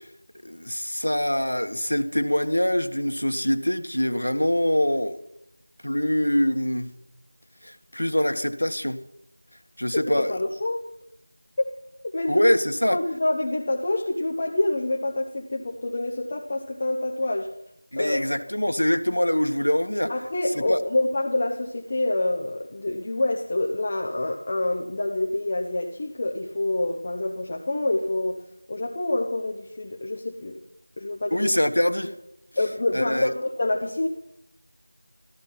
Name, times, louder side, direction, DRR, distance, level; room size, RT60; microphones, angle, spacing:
voice 1, 0.4-5.2 5.8-6.9 7.6-9.0 9.8-10.3 12.3-13.0 17.9-20.1 20.7-20.8 31.3-32.1 32.9-33.3, equal, 90° left, 1.4 m, -24 dB
voice 2, 9.9-10.8 11.6-11.8 12.1-12.5 12.9-17.5 18.0-18.3 20.1-28.4 28.7-30.6 31.0-31.5 32.6-34.1, left 2 dB, 25° left, 0.9 m, -27 dB
15.0 x 14.0 x 5.7 m
figure-of-eight pair, 175°, 0 cm